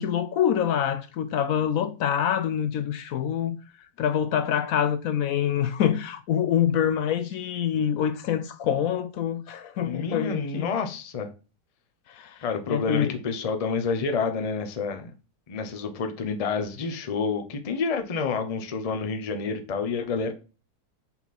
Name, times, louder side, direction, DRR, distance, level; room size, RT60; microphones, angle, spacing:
voice 1, 0.0-3.6 4.0-10.7 12.1-13.1, left 9 dB, 70° left, 0.9 m, -26 dB
voice 2, 9.8-11.3 12.4-15.1 15.5-20.3, left 5 dB, 35° left, 0.6 m, -29 dB
5.5 x 4.4 x 4.1 m
omnidirectional pair, 1.7 m